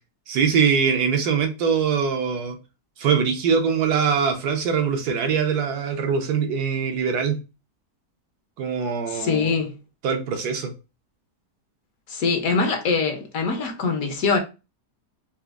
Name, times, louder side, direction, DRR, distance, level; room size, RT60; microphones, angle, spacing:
voice 1, 0.3-2.6 3.0-7.4 8.6-9.5 10.0-10.7, right 6 dB, 80° right, 1.3 m, -22 dB
voice 2, 9.1-9.8 12.1-14.4, left 4 dB, 65° left, 1.1 m, -23 dB
4.2 x 2.4 x 2.4 m
omnidirectional pair, 1.7 m